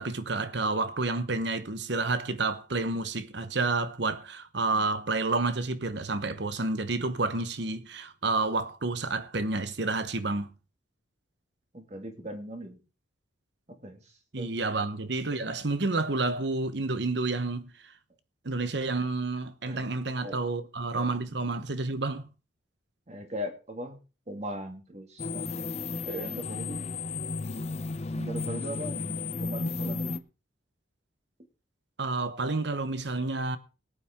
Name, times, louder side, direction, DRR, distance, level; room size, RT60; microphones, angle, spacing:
voice 1, 0.0-10.5 14.3-17.7 18.4-22.3 32.0-33.6, right 3 dB, 60° right, 1.0 m, -30 dB
voice 2, 11.7-12.8 13.7-14.5 19.6-19.9 20.2-20.4 20.9-21.1 23.1-24.0 24.3-25.7 26.0-26.8 28.1-30.2, equal, 35° right, 2.1 m, -39 dB
sound 1, 25.2-30.2, left 3 dB, 35° left, 0.6 m, -33 dB
19.5 x 8.8 x 3.6 m
head